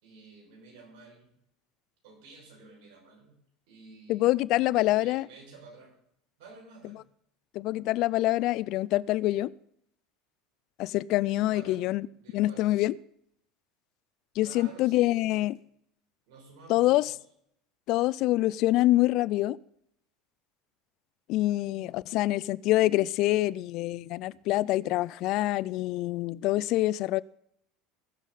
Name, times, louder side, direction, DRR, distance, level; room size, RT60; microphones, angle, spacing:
voice 1, 0.0-1.3 2.0-3.4 3.7-4.3 4.9-5.9 6.4-7.0 11.3-11.8 12.2-12.7 14.4-15.3 16.3-17.0, right 4 dB, 70° right, -2 dB, 6.0 m, -51 dB
voice 2, 4.1-5.3 7.5-9.5 10.8-12.1 12.3-12.9 14.4-15.6 16.7-17.1 17.9-19.6 21.3-27.2, left 17 dB, 60° left, 22 dB, 0.3 m, -26 dB
20.0 x 7.3 x 4.1 m, 0.72 s
hypercardioid pair, 85°, 0 cm